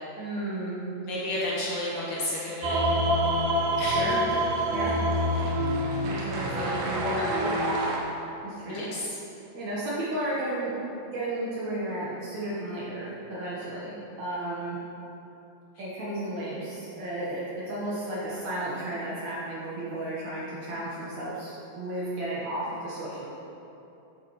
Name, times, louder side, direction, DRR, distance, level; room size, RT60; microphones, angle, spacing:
voice 1, 0.2-0.8 3.8-4.2 4.7-4.9 6.0-7.5 8.4-8.8 9.5-10.7 11.1-13.9 14.2-14.8 15.8-23.3, right 1 dB, 60° right, -8 dB, 2.2 m, -33 dB
voice 2, 1.0-2.8 3.8-4.1 8.7-9.1, left 1 dB, 60° left, -7 dB, 2.7 m, -31 dB
sound 1, 2.6-8.0, equal, 80° right, 2.9 m, -26 dB
9.4 x 8.4 x 3.1 m, 2.9 s
omnidirectional pair, 4.3 m